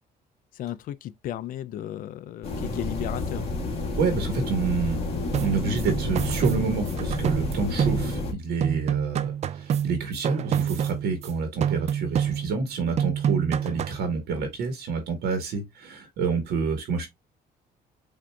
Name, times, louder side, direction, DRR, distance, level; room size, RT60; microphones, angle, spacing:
voice 1, 0.5-3.5, left 11 dB, 55° left, 0.4 m, -35 dB
sound 1, 2.4-8.3, left 2 dB, 35° left, 1.4 m, -30 dB
voice 2, 4.0-5.0 5.4-17.1, right 4 dB, 75° right, 1.3 m, -28 dB
sound 2, 5.3-8.3 8.6-11.3 11.6-12.7 13.0-14.1, right 9 dB, 40° right, 0.4 m, -27 dB
7.3 x 2.6 x 2.2 m
cardioid pair, 110°, 17 cm